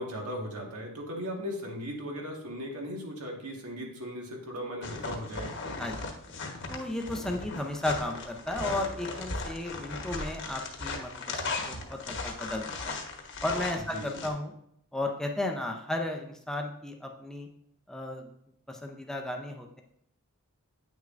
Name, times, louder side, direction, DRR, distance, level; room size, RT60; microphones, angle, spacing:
voice 1, 0.0-5.5 13.9-14.2, equal, 75° right, 0 dB, 1.6 m, -37 dB
sound 1, 4.8-14.3, left 3 dB, 55° left, 1.1 m, -37 dB
voice 2, 5.8-6.1 6.7-13.0 13.4-14.5 14.9-17.5 17.9-18.3 18.7-19.8, left 1 dB, ahead, 2 dB, 0.5 m, -34 dB
8.8 x 6.3 x 2.5 m, 0.73 s
head